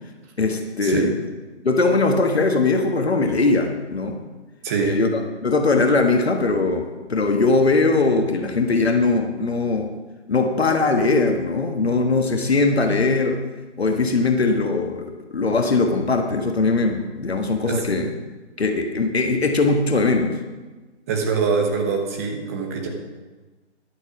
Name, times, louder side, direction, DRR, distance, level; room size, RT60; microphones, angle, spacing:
voice 1, 0.4-1.1 1.6-4.2 4.8-9.9 10.3-13.4 13.8-18.1 18.6-20.3, left 3 dB, 65° left, 4 dB, 1.5 m, -20 dB
voice 2, 4.6-5.0 17.7-17.8 21.1-22.9, right 5 dB, 15° right, 2 dB, 0.9 m, -23 dB
11.0 x 7.9 x 6.1 m, 1.3 s
figure-of-eight pair, 150°, 34 cm